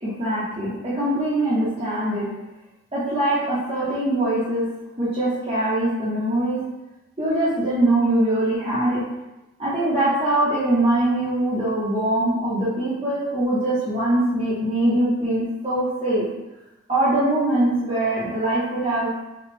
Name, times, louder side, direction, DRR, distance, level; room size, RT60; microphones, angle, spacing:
voice 1, 0.0-2.3 2.9-4.6 5.0-6.6 7.2-9.0 9.6-16.3 16.9-19.1, right 1 dB, 30° right, -10 dB, 0.9 m, -22 dB
6.0 x 2.4 x 3.3 m, 0.99 s
head